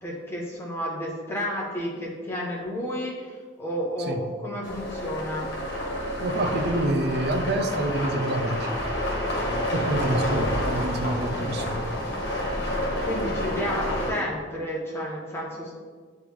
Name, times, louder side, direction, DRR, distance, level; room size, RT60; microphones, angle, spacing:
voice 1, 0.0-5.5 13.0-15.7, equal, 10° left, -5 dB, 1.1 m, -31 dB
sound 1, 4.6-14.1, left 1 dB, 55° left, 1.4 m, -29 dB
voice 2, 6.2-8.7 9.7-11.8, right 1 dB, 55° right, 7 dB, 0.5 m, -27 dB
8.5 x 3.2 x 3.4 m, 1.5 s
head